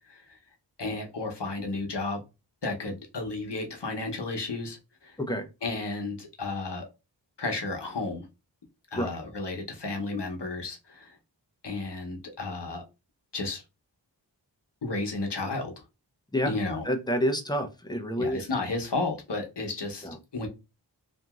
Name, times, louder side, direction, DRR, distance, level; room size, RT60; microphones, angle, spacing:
voice 1, 0.1-0.4 0.8-2.2 2.6-5.2 5.6-6.9 7.4-8.3 8.9-11.2 11.6-12.8 13.3-13.6 14.8-15.7 16.5-16.9 18.2-20.5, left 3 dB, 70° left, 0.9 m, -33 dB
voice 2, 16.8-18.4 20.0-20.1, equal, 10° left, 0.5 m, -28 dB
2.8 x 2.6 x 2.3 m
wide cardioid pair, 45°, 44 cm